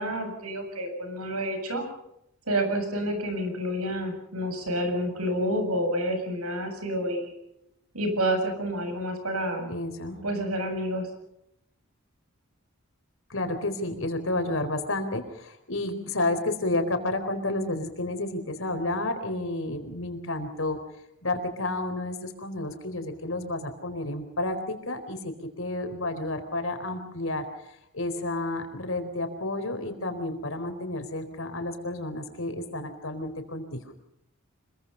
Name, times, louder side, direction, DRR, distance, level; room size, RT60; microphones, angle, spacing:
voice 1, 0.0-1.8 2.5-7.3 7.9-9.7 10.2-11.1, equal, 90° right, 6 dB, 7.5 m, -29 dB
voice 2, 9.7-10.2 13.3-20.8 21.2-33.8, left 2 dB, 65° left, 7 dB, 4.2 m, -31 dB
26.0 x 23.0 x 5.7 m, 0.80 s
head